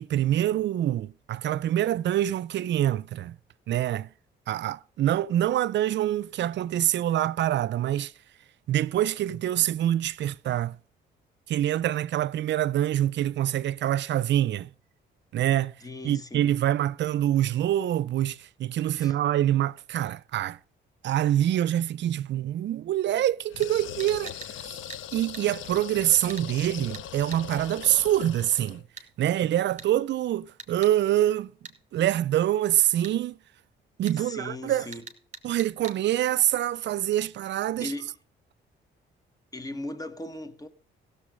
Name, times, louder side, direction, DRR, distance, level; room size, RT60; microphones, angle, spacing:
voice 1, 0.0-3.4 3.7-4.1 4.5-8.1 8.7-10.8 11.5-14.7 15.3-15.7 16.0-20.6 21.0-24.7 25.1-28.8 29.2-31.5 31.9-33.4 34.0-34.9 35.4-37.9, right 12 dB, 65° right, 0.5 m, -25 dB
voice 2, 15.8-16.6 18.9-19.1 34.1-35.1 37.8-38.2 39.5-40.7, left 2 dB, 20° left, 1.4 m, -38 dB
sound 1, 23.5-28.8, left 11 dB, 80° left, 0.6 m, -40 dB
sound 2, 23.6-23.7 24.0-24.5 24.9-25.0 25.3-25.5 26.3-26.5 26.9-27.1 27.3-27.4 29.0-29.1 29.8-29.9 30.6-30.9 31.6-31.8 33.0-33.2 34.1-34.2 34.9-36.0 36.4-36.5, right 3 dB, 40° right, 2.0 m, -43 dB
16.0 x 7.0 x 5.1 m
cardioid pair, 90°, 20 cm